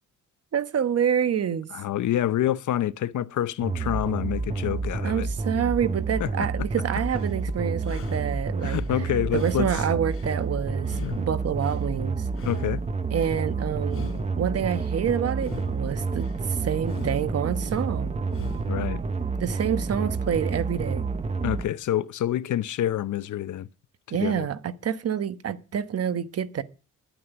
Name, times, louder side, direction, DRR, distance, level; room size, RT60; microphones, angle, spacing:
voice 1, 0.5-1.7 5.0-8.8 9.3-12.3 13.1-14.1 14.3-18.2 19.4-21.1 24.1-26.6, right 8 dB, 45° right, 1.1 m, -27 dB
voice 2, 1.7-5.3 6.2-6.5 8.6-9.8 11.0-11.2 12.4-12.8 18.7-19.0 21.4-23.7 24.1-24.5, left 12 dB, 60° left, 0.7 m, -27 dB
sound 1, 3.6-21.7, right 4 dB, 20° right, 0.9 m, -29 dB
sound 2, 6.9-7.4 7.8-8.9 9.3-10.4 10.8-11.9 12.3-13.4 13.8-14.9 15.3-16.4 16.8-17.8 18.2-18.9, left 3 dB, 40° left, 3.3 m, -43 dB
11.0 x 9.2 x 8.0 m
cardioid pair, 125°, 33 cm